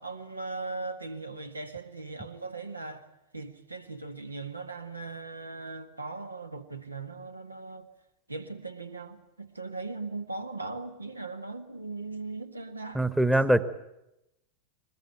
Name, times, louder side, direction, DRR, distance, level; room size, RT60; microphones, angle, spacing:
voice 1, 0.0-3.1 3.3-7.9 8.3-13.0, right 3 dB, 80° right, 1.8 m, -39 dB
voice 2, 12.9-13.6, right 1 dB, 5° right, 1.2 m, -22 dB
23.0 x 20.5 x 9.1 m
figure-of-eight pair, 90°, 0 cm